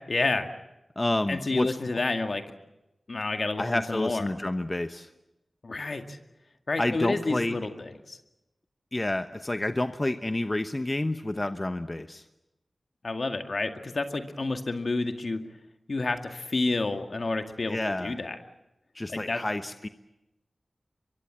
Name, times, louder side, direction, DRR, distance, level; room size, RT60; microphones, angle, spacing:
voice 1, 0.1-0.5 1.3-2.4 3.1-4.3 5.6-6.2 6.7-8.2 13.0-15.4 15.9-18.4 19.1-19.4, left 3 dB, 65° left, 6 dB, 2.0 m, -29 dB
voice 2, 1.0-1.8 3.6-5.1 6.8-7.6 8.9-12.2 17.7-18.2 18.9-19.9, left 1 dB, 35° left, 9 dB, 1.0 m, -29 dB
24.0 x 23.0 x 7.7 m, 0.93 s
cardioid pair, 40°, 0 cm